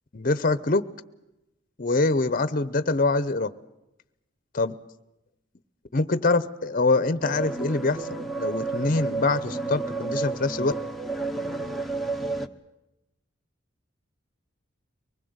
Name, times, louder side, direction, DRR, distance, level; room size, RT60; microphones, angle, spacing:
voice 1, 0.1-0.9 1.8-3.5 4.5-4.7 5.9-10.7, left 3 dB, 45° left, 15 dB, 0.8 m, -24 dB
sound 1, 7.2-12.5, right 3 dB, ahead, 0.9 m, -31 dB
24.0 x 20.0 x 8.0 m, 0.93 s
head